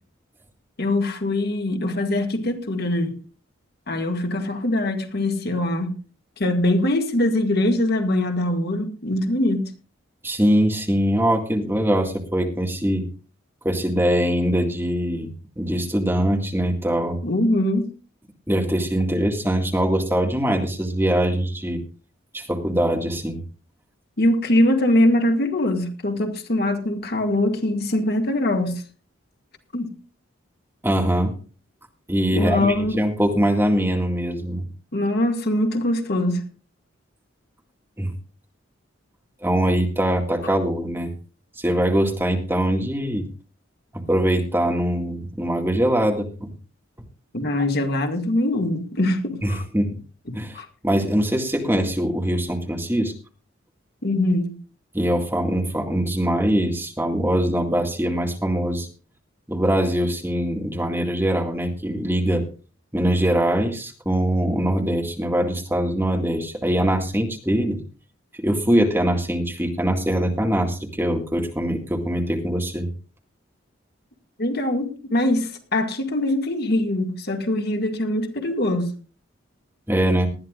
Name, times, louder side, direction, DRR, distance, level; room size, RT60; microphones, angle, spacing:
voice 1, 0.8-3.2 3.9-6.0 6.4-9.7 17.2-17.9 24.2-28.8 29.7-30.0 32.3-33.0 34.9-36.4 47.3-49.6 50.3-50.7 54.0-54.6 74.4-78.9, left 1 dB, 50° left, 2.0 m, -22 dB
voice 2, 10.2-13.1 13.6-15.3 15.6-17.2 18.5-21.8 22.3-23.4 30.8-31.3 32.1-34.6 38.0-38.1 39.4-41.1 41.6-43.3 43.9-46.5 49.4-49.9 50.3-53.1 54.9-58.9 59.5-62.4 62.9-67.8 68.4-72.9 79.9-80.3, right 1 dB, 10° right, 2.0 m, -22 dB
19.5 x 13.0 x 2.5 m
head